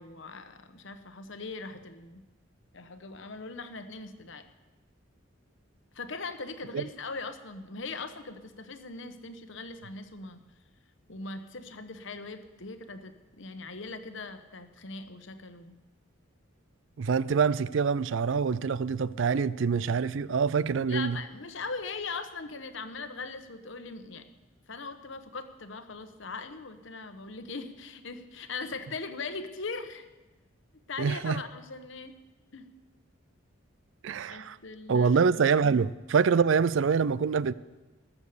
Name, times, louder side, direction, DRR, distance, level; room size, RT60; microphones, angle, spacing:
voice 1, 0.0-2.2 2.7-4.5 5.9-10.4 11.1-15.7 20.9-24.3 24.7-30.1 30.9-32.2 32.5-32.7 34.3-35.2, left 4 dB, 65° left, 1.1 m, -40 dB
voice 2, 17.0-21.2 31.0-31.4 34.0-34.6 34.9-37.5, right 5 dB, 65° right, 0.4 m, -25 dB
20.0 x 7.3 x 6.8 m
head